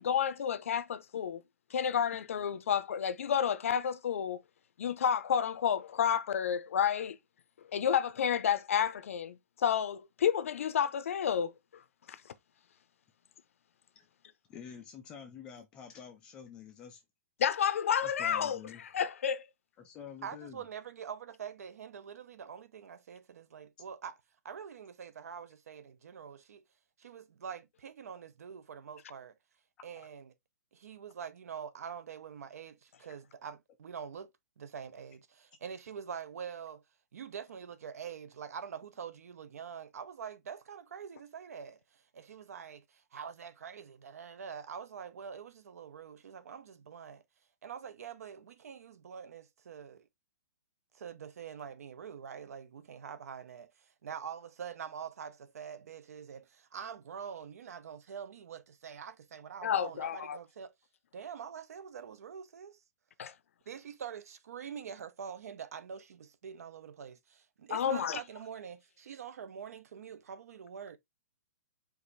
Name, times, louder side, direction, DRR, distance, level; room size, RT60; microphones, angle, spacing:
voice 1, 0.0-1.4 1.7-4.4 4.8-7.2 7.7-11.5 12.1-12.2 17.4-19.4 59.6-60.4 63.2-63.3 67.7-68.2, left 8 dB, 50° left, 0.6 m, -30 dB
voice 2, 14.5-17.0 18.0-18.8 19.8-20.7, left 8 dB, 10° left, 0.3 m, -48 dB
voice 3, 20.2-24.2 24.4-26.6 27.0-29.3 29.8-30.3 30.7-34.3 34.6-36.8 37.1-47.2 47.6-50.1 50.9-60.7 61.1-62.8 63.7-71.0, right 7 dB, 60° right, 0.7 m, -45 dB
4.8 x 2.5 x 4.0 m
hypercardioid pair, 180°, 9 cm